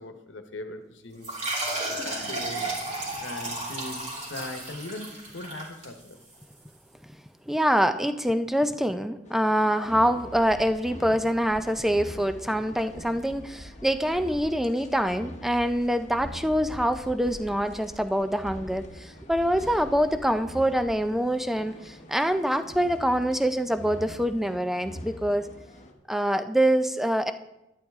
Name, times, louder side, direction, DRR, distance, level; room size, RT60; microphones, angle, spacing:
voice 1, 0.0-1.4 1.9-2.8 3.2-6.2, left 2 dB, 80° left, 7 dB, 1.1 m, -40 dB
sound 1, 1.2-6.4, right 2 dB, 40° right, 3.2 m, -33 dB
voice 2, 7.5-25.5 26.1-27.3, equal, ahead, 10 dB, 0.5 m, -25 dB
sound 2, 9.2-25.9, left 1 dB, 40° left, 1.1 m, -44 dB
12.0 x 10.0 x 3.6 m, 0.91 s
head